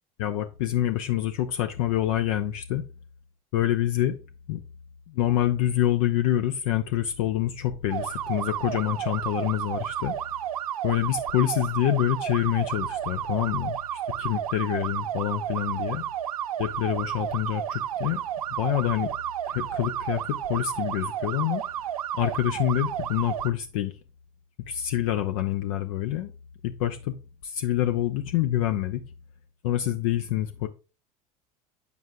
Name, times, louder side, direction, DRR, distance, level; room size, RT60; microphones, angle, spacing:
voice 1, 0.2-2.9 3.5-4.2 4.5-4.6 5.1-10.2 10.8-16.0 16.6-18.2 18.6-19.1 19.5-21.6 22.1-24.0 24.7-26.3 26.6-27.2 27.4-29.0 29.6-30.7, left 12 dB, 70° left, 0.6 m, -26 dB
sound 1, 7.9-23.5, right 11 dB, 90° right, 0.4 m, -32 dB
8.1 x 7.1 x 2.2 m
hypercardioid pair, 75°, 18 cm